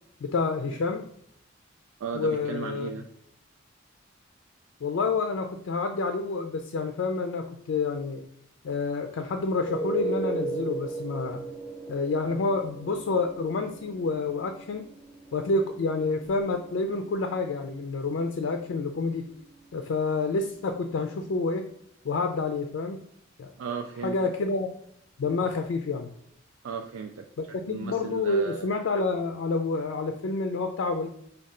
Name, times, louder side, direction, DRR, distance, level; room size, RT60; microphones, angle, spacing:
voice 1, 0.2-1.1 2.1-2.9 4.8-8.2 8.6-11.4 11.9-14.9 15.3-19.3 19.7-21.7 22.0-23.0 23.4-23.5 24.0-24.7 25.2-26.1 27.7-31.1, left 3 dB, 70° left, 5 dB, 0.4 m, -28 dB
voice 2, 2.0-3.0 23.6-24.3 26.6-27.3 27.7-28.7, right 6 dB, 85° right, 3 dB, 0.4 m, -35 dB
sound 1, 9.4-21.0 25.3-25.4, right 3 dB, 10° left, 0.8 m, -38 dB
5.3 x 2.3 x 3.6 m, 0.71 s
head